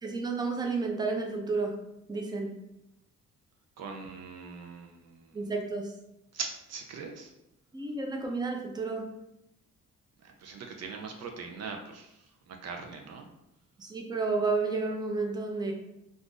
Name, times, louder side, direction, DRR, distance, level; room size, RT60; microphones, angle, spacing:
voice 1, 0.0-1.7 2.1-2.5 5.3-5.9 7.7-9.1 13.8-15.7, right 3 dB, 15° right, 1 dB, 0.6 m, -31 dB
voice 2, 3.8-5.4 6.3-7.3 10.2-13.3, right 5 dB, 60° right, 2 dB, 0.5 m, -41 dB
2.5 x 2.4 x 3.7 m, 0.85 s
cardioid pair, 90°, 30 cm